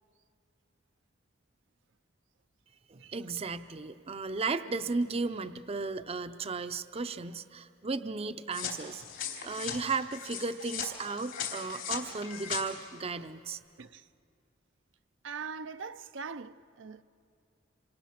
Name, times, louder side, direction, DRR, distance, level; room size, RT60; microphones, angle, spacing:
voice 1, 2.9-9.0 9.4-13.6, right 4 dB, 30° right, 0.6 m, -35 dB
sound 1, 8.5-12.6, left 7 dB, 75° left, 3.5 m, -38 dB
voice 2, 15.2-17.0, right 5 dB, 80° right, 0.6 m, -42 dB
27.5 x 27.0 x 5.9 m
head